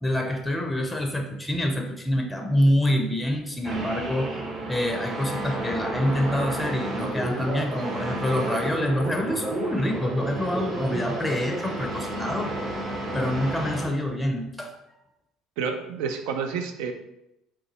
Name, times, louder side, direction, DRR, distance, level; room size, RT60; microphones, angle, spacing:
voice 1, 0.0-4.3 4.7-12.5 13.1-14.8, left 1 dB, 10° left, 4 dB, 0.5 m, -26 dB
sound 1, 3.6-13.9, right 1 dB, 40° right, 1.2 m, -31 dB
voice 2, 15.6-16.9, right 6 dB, 65° right, 6 dB, 0.4 m, -29 dB
3.7 x 2.2 x 3.0 m, 0.86 s
figure-of-eight pair, 60°, 0 cm